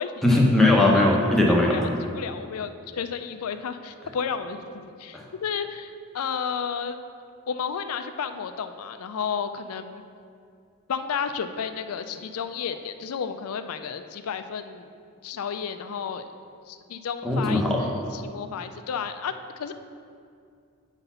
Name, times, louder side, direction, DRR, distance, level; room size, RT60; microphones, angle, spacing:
voice 1, 0.2-1.8 5.1-5.2 17.2-17.8, left 2 dB, ahead, -2 dB, 0.8 m, -19 dB
voice 2, 1.6-7.0 7.5-10.0 10.9-14.9 15.2-16.2 16.7-19.7, left 6 dB, 80° left, 10 dB, 0.4 m, -32 dB
8.1 x 4.0 x 5.6 m, 2.3 s
head